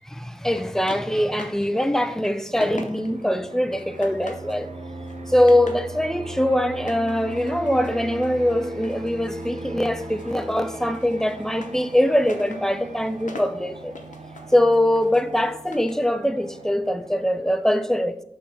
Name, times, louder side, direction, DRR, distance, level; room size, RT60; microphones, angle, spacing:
voice 1, 0.1-4.7 5.3-13.9 14.5-18.2, left 1 dB, 5° left, 0.6 m, -22 dB
sound 1, 0.5-1.7 2.0-3.3 3.7-4.6 5.0-5.9 6.7-9.7 10.0-16.1, left 2 dB, 90° left, 0.9 m, -43 dB
Fixed-wing aircraft airplane, 2.5-17.7, right 2 dB, 65° right, 1.1 m, -39 dB
6.7 x 3.8 x 5.7 m
wide cardioid pair, 55°, 13 cm